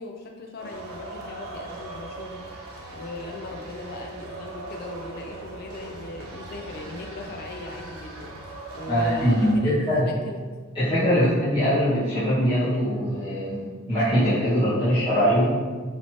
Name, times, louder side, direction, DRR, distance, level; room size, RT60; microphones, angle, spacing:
voice 1, 0.0-10.4 11.0-11.3, left 2 dB, 45° left, 2 dB, 0.4 m, -38 dB
sound 1, 0.6-9.5, right 2 dB, 80° right, 0.9 m, -40 dB
voice 2, 8.9-10.1 10.7-15.5, equal, 25° left, -15 dB, 1.2 m, -22 dB
5.4 x 2.9 x 3.0 m, 1.5 s
head